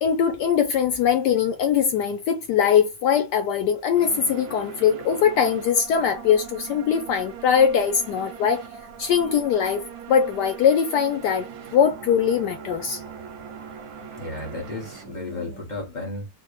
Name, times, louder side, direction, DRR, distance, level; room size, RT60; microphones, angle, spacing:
voice 1, 0.0-8.6 9.0-9.8 10.1-13.0, left 7 dB, 80° left, 0.9 m, -21 dB
sound 1, 3.9-15.6, right 7 dB, 70° right, 0.9 m, -40 dB
voice 2, 14.2-16.3, left 2 dB, 35° left, 0.7 m, -33 dB
4.0 x 2.2 x 3.1 m
omnidirectional pair, 2.3 m